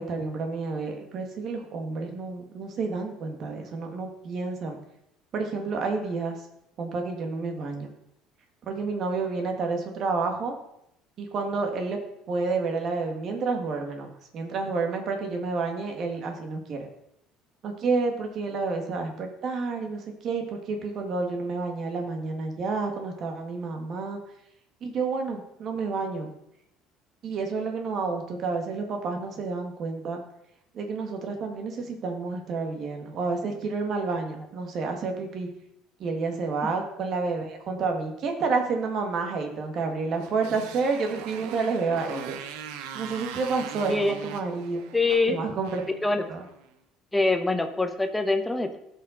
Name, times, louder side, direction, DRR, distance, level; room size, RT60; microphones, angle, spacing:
voice 1, 0.0-4.8 5.3-6.3 6.8-7.9 8.7-10.6 11.2-12.0 12.3-16.9 17.6-24.2 24.8-26.3 27.2-30.2 30.7-35.5 36.0-42.4 42.9-44.8 45.3-45.8 46.3-46.4, right 4 dB, 40° right, 3 dB, 1.7 m, -30 dB
Motorcycle, 40.1-46.7, right 8 dB, 85° right, 0.9 m, -41 dB
voice 2, 44.9-45.4 46.0-46.2 47.1-48.8, left 2 dB, 5° left, 7 dB, 0.8 m, -24 dB
16.5 x 5.6 x 3.8 m, 0.80 s
cardioid pair, 165°, 0 cm